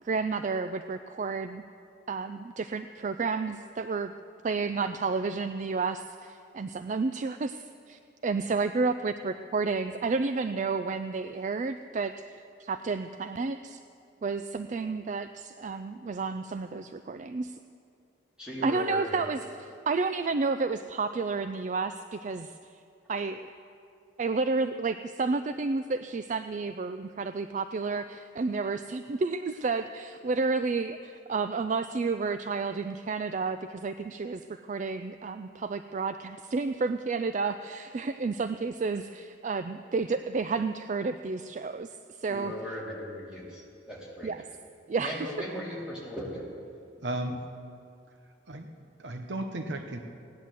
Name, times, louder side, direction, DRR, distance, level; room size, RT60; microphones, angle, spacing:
voice 1, 0.0-1.6 2.1-4.1 4.4-13.8 14.2-17.6 18.6-19.4 19.9-22.5 23.1-23.5 24.2-41.9 42.2-42.5 44.2-44.4 44.9-45.3, right 4 dB, 40° right, 10 dB, 0.3 m, -31 dB
voice 2, 18.4-19.3 42.3-44.3 45.0-46.4, left 1 dB, 5° right, -7 dB, 3.5 m, -38 dB
voice 3, 47.0-47.5 48.5-48.7 49.0-50.0, right 1 dB, 65° right, 5 dB, 0.9 m, -34 dB
17.0 x 10.5 x 7.6 m, 2.5 s
head